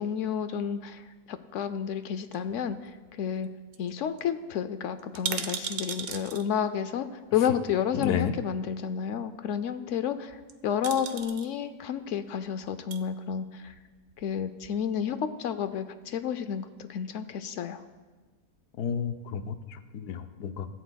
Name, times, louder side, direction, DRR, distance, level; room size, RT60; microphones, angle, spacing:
voice 1, 0.0-3.5 3.8-10.4 10.6-13.7 14.2-17.8, left 8 dB, 65° left, 11 dB, 0.8 m, -31 dB
sound 1, 2.3-3.1 3.4-3.5 3.7-3.9 4.2-4.3 5.0-6.4 7.6-7.7 10.3-10.5 10.8-11.5 12.6-13.0 13.7-14.4 14.6-14.7, right 8 dB, 85° right, 1.3 m, -36 dB
voice 2, 7.9-8.3 18.8-20.7, left 7 dB, 90° left, 8 dB, 1.2 m, -31 dB
16.0 x 14.0 x 2.3 m, 1.3 s
omnidirectional pair, 1.6 m